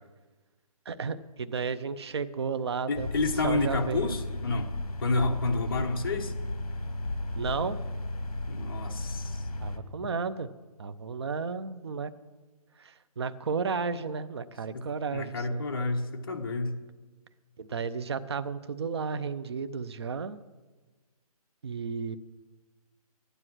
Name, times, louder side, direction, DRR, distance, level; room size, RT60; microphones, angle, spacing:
voice 1, 0.9-4.2 7.3-7.8 9.6-10.5 10.8-12.1 12.8-15.6 17.6-20.4 21.6-22.2, right 5 dB, 45° right, 12 dB, 0.6 m, -33 dB
voice 2, 2.9-4.7 5.0-6.3 8.5-9.4 10.0-10.1 15.1-16.7, left 3 dB, 35° left, 3 dB, 1.1 m, -29 dB
sound 1, 3.0-9.8, left 2 dB, 65° left, 1.4 m, -34 dB
13.0 x 10.0 x 6.2 m, 1.3 s
hypercardioid pair, 170°, 20 cm